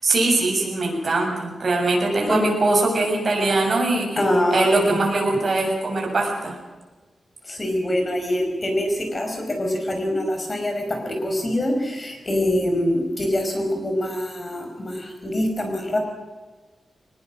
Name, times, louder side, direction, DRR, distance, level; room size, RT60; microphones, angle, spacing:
voice 1, 0.0-4.1 4.5-6.6, right 2 dB, 40° right, 0 dB, 7.1 m, -21 dB
voice 2, 4.2-5.0 7.4-16.0, left 1 dB, 25° left, 3 dB, 5.6 m, -24 dB
22.5 x 20.5 x 6.5 m, 1.3 s
wide cardioid pair, 145°, 0 cm